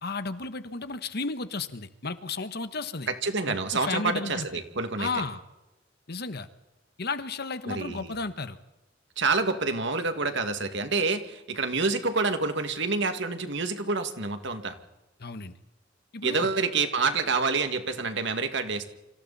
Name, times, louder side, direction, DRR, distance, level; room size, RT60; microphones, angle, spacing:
voice 1, 0.0-3.1 3.5-4.6 5.0-5.4 6.1-6.5 7.0-8.6 15.2-15.5 16.1-16.5, left 3 dB, 55° left, 11 dB, 1.4 m, -33 dB
voice 2, 3.1-5.1 7.7-8.1 9.2-14.7 16.2-18.8, right 4 dB, 65° right, 7 dB, 2.4 m, -27 dB
29.5 x 26.0 x 4.3 m, 0.97 s
head